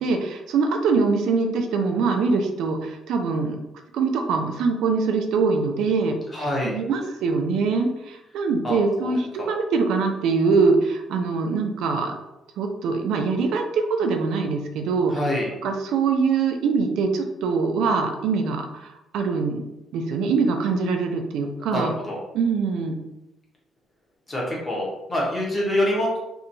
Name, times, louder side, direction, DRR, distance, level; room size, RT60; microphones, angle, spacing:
voice 1, 0.0-3.6 3.9-6.2 6.6-12.1 12.6-15.1 15.6-19.6 19.9-21.9 22.3-23.0, right 4 dB, 75° right, 4 dB, 0.4 m, -23 dB
voice 2, 6.3-6.8 8.6-9.1 15.1-15.5 21.7-22.2 24.3-26.2, left 1 dB, 15° left, -4 dB, 0.7 m, -26 dB
2.8 x 2.2 x 2.5 m, 0.92 s
cardioid pair, 175°, 0 cm